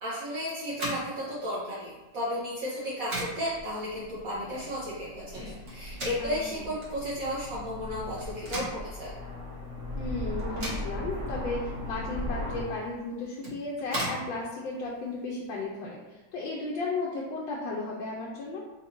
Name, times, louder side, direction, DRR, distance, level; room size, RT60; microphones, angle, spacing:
voice 1, 0.0-5.4 5.7-9.1, equal, 60° right, -8 dB, 1.1 m, -34 dB
sound 1, 0.7-15.6, equal, 35° right, 1.2 m, -41 dB
Aircraft, 3.4-12.6, left 1 dB, 20° right, 1.2 m, -38 dB
voice 2, 6.2-6.7 10.0-18.6, left 3 dB, 90° left, -3 dB, 1.4 m, -35 dB
3.9 x 2.5 x 4.3 m, 1.1 s
omnidirectional pair, 2.0 m